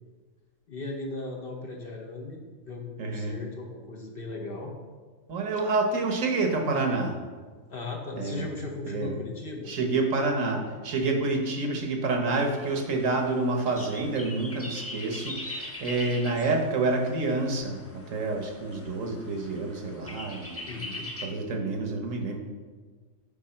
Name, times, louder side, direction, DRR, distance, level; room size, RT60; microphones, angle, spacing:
voice 1, 0.7-2.4 2.7-4.7 7.7-9.7 20.7-21.1, left 2 dB, 50° left, 1 dB, 0.9 m, -37 dB
voice 2, 3.0-3.4 5.3-7.1 8.2-8.5 8.8-9.1 9.7-20.6 21.2-22.4, right 3 dB, 70° right, 3 dB, 1.4 m, -28 dB
sound 1, 12.6-21.3, left 1 dB, 15° left, 0.5 m, -42 dB
7.7 x 4.6 x 4.4 m, 1.4 s
omnidirectional pair, 1.4 m